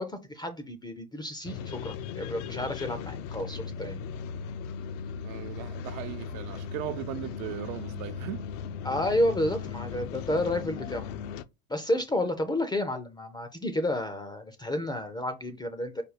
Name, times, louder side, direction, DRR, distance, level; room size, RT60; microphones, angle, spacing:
voice 1, 0.0-4.0 8.8-11.0 11.7-16.0, left 1 dB, 10° left, 0.5 m, -31 dB
sound 1, 1.4-11.4, left 6 dB, 55° left, 0.6 m, -37 dB
voice 2, 5.2-8.5, right 13 dB, 65° right, 0.7 m, -38 dB
5.0 x 2.2 x 4.7 m
hypercardioid pair, 100°, 46 cm